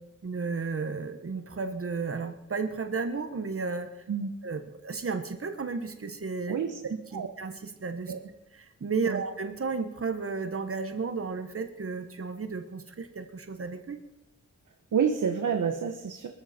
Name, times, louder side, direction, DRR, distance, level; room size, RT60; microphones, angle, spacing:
voice 1, 0.2-3.9 4.4-6.5 6.9-8.1 8.5-14.0, right 4 dB, 45° right, 8 dB, 1.3 m, -33 dB
voice 2, 6.5-6.8 7.1-7.3 8.1-8.3 9.0-9.2 14.9-16.3, right 7 dB, 85° right, 6 dB, 1.2 m, -28 dB
22.5 x 13.0 x 4.4 m, 0.95 s
wide cardioid pair, 120°, 30 cm